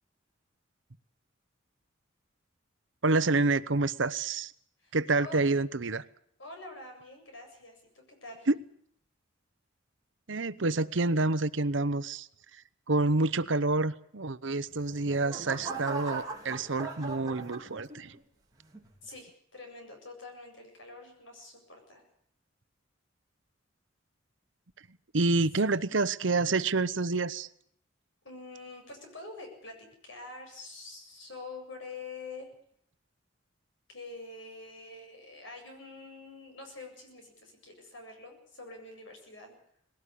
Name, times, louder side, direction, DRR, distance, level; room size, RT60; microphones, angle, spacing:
voice 1, 3.0-4.5 4.9-6.0 8.5-8.6 10.3-12.3 12.5-12.6 12.9-18.2 25.1-27.5, right 3 dB, 70° right, 16 dB, 0.9 m, -28 dB
voice 2, 6.4-8.5 19.0-22.0 28.2-32.5 33.9-39.6, left 3 dB, 70° left, 4 dB, 7.7 m, -46 dB
sound 1, 14.6-18.2 18.7-19.1, right 3 dB, 20° right, 3.8 m, -40 dB
20.5 x 17.5 x 8.5 m, 0.66 s
head